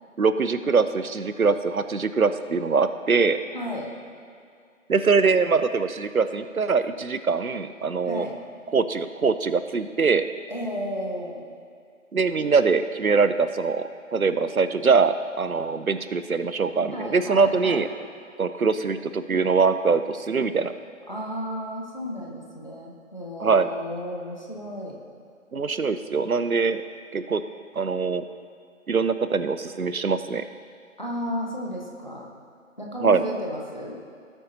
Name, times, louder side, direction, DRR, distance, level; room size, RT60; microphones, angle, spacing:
voice 1, 0.2-3.4 4.9-8.3 8.7-10.2 12.1-17.9 18.4-20.7 23.4-23.7 25.5-26.8 27.1-27.4 27.7-28.2 28.9-30.4 33.0-33.2, right 5 dB, 85° right, 11 dB, 0.7 m, -23 dB
voice 2, 3.5-3.9 8.0-8.4 10.5-11.5 16.9-17.8 21.1-25.0 31.0-32.3 32.8-34.0, equal, 35° left, -2 dB, 1.2 m, -33 dB
18.0 x 8.3 x 2.8 m, 2.4 s
figure-of-eight pair, 170°, 41 cm